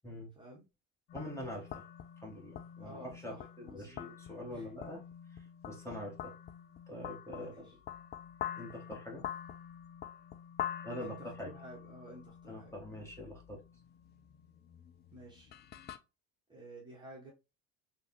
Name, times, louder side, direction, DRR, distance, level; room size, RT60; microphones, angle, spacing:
sound 1, 1.1-16.0, left 10 dB, 30° left, 0.4 m, -46 dB
voice 1, 1.1-1.8 2.2-5.0 5.3-5.4 5.6-6.3 6.9-7.7 8.6-9.2 10.8-11.5 12.5-13.6, left 1 dB, 5° left, 1.5 m, -44 dB
voice 2, 2.8-4.1 4.5-4.7 7.3-7.7 11.0-12.7 15.1-15.5 16.5-17.3, right 1 dB, 10° right, 1.3 m, -52 dB
3.7 x 2.5 x 3.1 m
hypercardioid pair, 65°, 39 cm